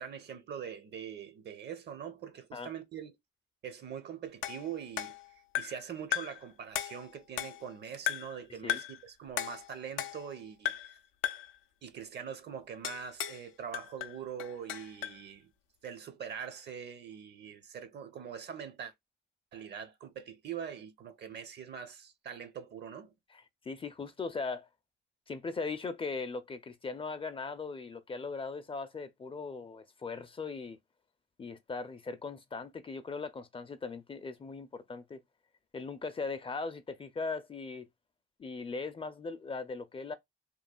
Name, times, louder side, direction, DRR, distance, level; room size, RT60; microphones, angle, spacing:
voice 1, 0.0-3.2 3.6-5.1 5.6-11.0 11.8-15.5 15.8-18.9 19.5-23.1, right 8 dB, 60° right, 0.8 m, -43 dB
sound 1, 4.4-5.9 6.1-6.5 6.7-7.7 8.1-8.4 8.7-9.0 9.4-10.4 10.6-11.0 11.2-11.6 12.8-13.4 13.7-15.2, left 12 dB, 90° left, 0.4 m, -36 dB
voice 2, 23.7-24.7 25.3-30.8 31.4-35.2 35.7-37.9 38.4-40.1, left 4 dB, 25° left, 0.4 m, -39 dB
3.1 x 2.3 x 2.2 m
cardioid pair, 90°, 20 cm